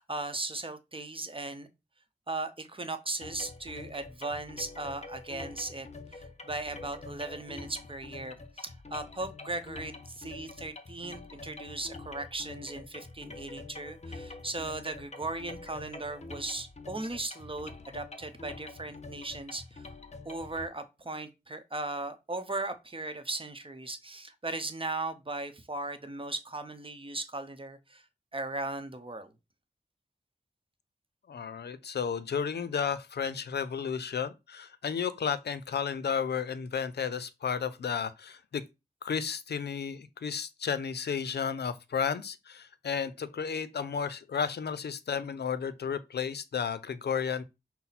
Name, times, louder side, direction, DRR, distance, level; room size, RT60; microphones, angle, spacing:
voice 1, 0.0-1.7 2.3-5.9 6.1-19.9 20.2-28.0 28.3-29.3, right 2 dB, 30° right, 0.8 m, -37 dB
sound 1, 3.2-20.7, left 3 dB, 40° left, 0.7 m, -46 dB
voice 2, 31.3-38.6 39.0-47.4, left 6 dB, 80° left, 0.4 m, -33 dB
5.7 x 2.1 x 4.0 m
cardioid pair, 50°, 17 cm